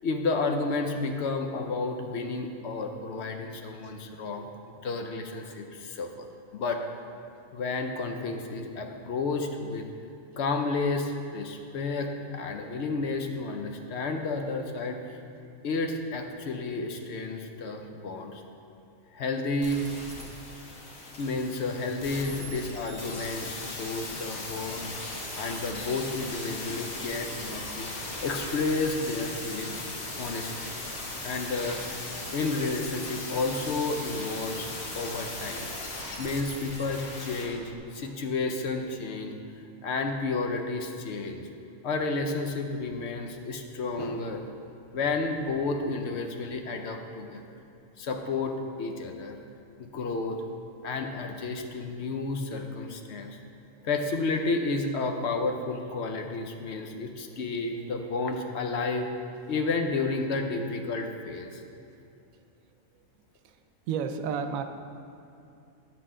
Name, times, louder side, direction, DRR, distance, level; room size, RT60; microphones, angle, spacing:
voice 1, 0.0-4.5 4.8-6.8 7.5-9.9 10.4-15.2 15.6-18.4 19.1-19.9 21.2-25.0 25.4-27.9 28.2-29.8 30.2-30.7 31.2-32.0 32.3-34.7 34.9-35.7 36.2-39.4 39.8-41.5 41.8-44.4 44.9-47.4 48.0-49.4 49.8-50.4 50.8-53.4 53.8-59.1 59.5-61.6, left 3 dB, 65° left, 4 dB, 0.8 m, -31 dB
voice 2, 12.5-12.8 20.8-21.0 37.4-37.5 37.9-38.1 53.8-54.1 63.4-63.6 63.9-64.6, right 6 dB, 85° right, 8 dB, 1.0 m, -35 dB
sound 1, 19.6-37.5 37.7-37.8, left 2 dB, 85° left, 1.6 m, -38 dB
9.2 x 7.6 x 3.7 m, 2.6 s
omnidirectional pair, 1.4 m